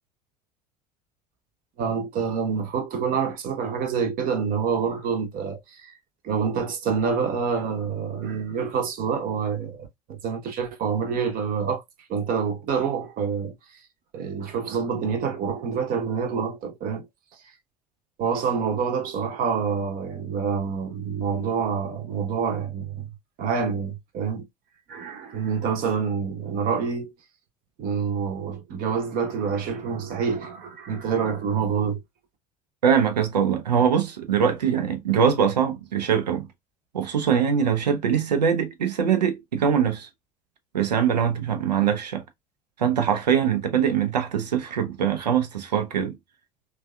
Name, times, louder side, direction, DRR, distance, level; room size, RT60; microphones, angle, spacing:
voice 1, 1.8-5.9 6.2-11.8 12.1-13.8 14.1-17.1 18.2-24.5 24.9-27.1 27.8-32.0, right 6 dB, 45° right, 0.8 m, -27 dB
voice 2, 32.8-36.5 36.9-40.1 40.7-42.2 42.8-46.2, right 8 dB, 80° right, 0.6 m, -22 dB
3.2 x 2.2 x 2.3 m
figure-of-eight pair, 65°, 21 cm